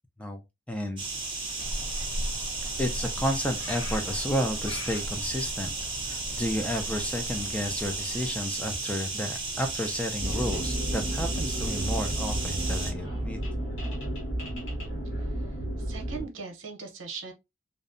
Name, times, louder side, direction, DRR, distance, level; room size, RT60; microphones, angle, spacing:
voice 1, 0.7-1.0 2.8-13.4, equal, 5° left, 0.3 m, -32 dB
sound 1, 1.0-12.9, right 3 dB, 25° right, 0.7 m, -34 dB
Frog, 1.6-8.3, equal, 85° left, 1.0 m, -38 dB
sound 2, 10.2-16.3, right 1 dB, 65° left, 1.2 m, -32 dB
voice 2, 15.3-17.3, right 5 dB, 75° right, 0.7 m, -40 dB
2.6 x 2.1 x 2.5 m
head